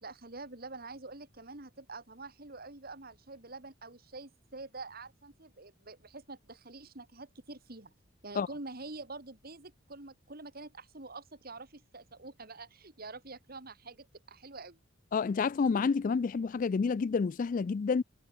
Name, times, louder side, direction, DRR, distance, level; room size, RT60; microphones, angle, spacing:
voice 1, 0.0-7.9 8.2-14.8, right 3 dB, 50° right, 2.6 m, -46 dB
voice 2, 15.1-18.0, left 5 dB, 45° left, 0.3 m, -29 dB
head